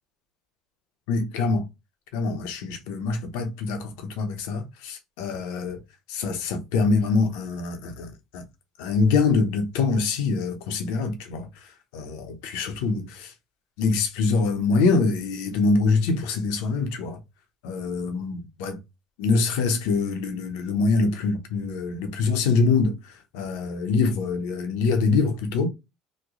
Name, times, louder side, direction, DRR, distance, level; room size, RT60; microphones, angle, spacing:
voice 1, 1.1-1.7 2.1-5.8 6.1-8.4 8.8-11.5 11.9-13.3 13.8-17.2 17.6-18.8 19.2-23.0 23.3-25.7, left 4 dB, 85° left, 0.7 m, -24 dB
3.1 x 2.2 x 3.6 m
supercardioid pair, 95°, 0 cm